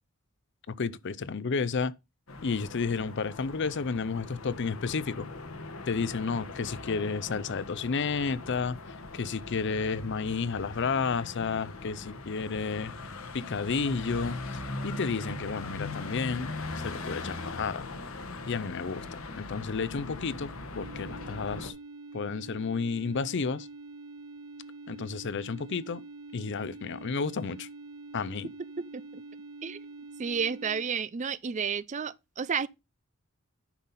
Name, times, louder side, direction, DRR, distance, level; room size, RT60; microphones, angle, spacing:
voice 1, 0.8-1.9 2.4-5.3 5.9-8.8 9.1-12.9 13.3-16.5 16.8-17.9 18.5-21.7 22.1-23.7 24.9-26.0 26.3-27.7 28.1-28.5, left 5 dB, 55° left, 0.6 m, -31 dB
sound 1, 2.3-21.7, left 3 dB, 75° left, 1.3 m, -40 dB
sound 2, 20.7-30.8, right 3 dB, 70° right, 1.0 m, -46 dB
voice 2, 30.2-32.7, right 6 dB, 35° right, 0.4 m, -31 dB
10.0 x 5.7 x 4.1 m
head